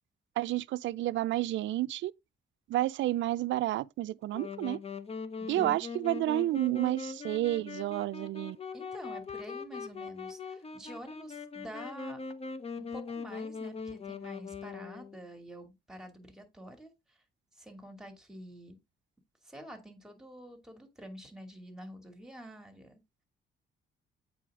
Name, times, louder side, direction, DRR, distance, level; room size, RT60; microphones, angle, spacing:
voice 1, 0.4-2.1 2.7-4.8 5.5-8.6, right 15 dB, 70° right, 0.4 m, -30 dB
Wind instrument woodwind instrument, 4.3-15.2, left 4 dB, 30° left, 1.0 m, -41 dB
voice 2, 8.7-12.2 12.8-17.2 17.5-18.8 19.4-23.0, equal, 5° right, 2.6 m, -48 dB
8.4 x 4.9 x 3.7 m
cardioid pair, 90°, 20 cm